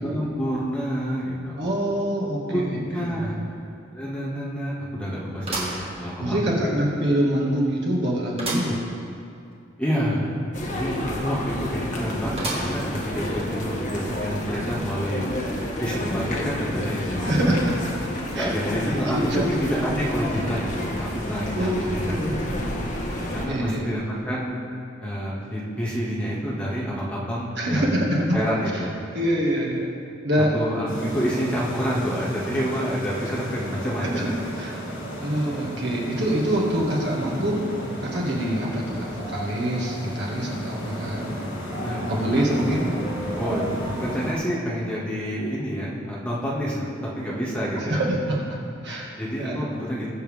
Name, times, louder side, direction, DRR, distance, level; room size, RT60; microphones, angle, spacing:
voice 1, 0.0-1.6 2.5-3.3 3.9-6.5 9.8-10.3 10.7-15.2 15.8-17.8 18.3-22.0 22.4-22.5 23.3-24.6 25.0-27.9 28.2-29.0 30.5-34.5 41.8-43.0 43.3-43.7 44.0-46.9 47.2-48.0 49.1-50.1, equal, 5° left, -7 dB, 2.2 m, -28 dB
voice 2, 1.6-3.4 6.2-8.8 17.2-18.5 19.1-19.6 21.5-22.6 23.5-23.9 27.6-28.4 28.7-28.8 29.1-29.9 30.2-30.5 34.0-34.3 34.6-34.9 35.2-37.7 38.0-41.2 42.1-42.9 47.7-49.6, right 1 dB, 60° right, -3 dB, 2.2 m, -25 dB
sound 1, 3.2-3.3 3.7-3.8 5.4-6.5 7.0-7.1 8.4-8.8 9.2-9.3 9.5-9.6 12.4-13.0 13.6-13.7 14.6-14.7, right 2 dB, 30° right, 2.0 m, -31 dB
sound 2, 10.5-23.5, left 1 dB, 40° left, 1.7 m, -30 dB
sound 3, 30.9-44.3, equal, 85° left, 3.3 m, -33 dB
20.5 x 7.8 x 3.7 m, 2.4 s
head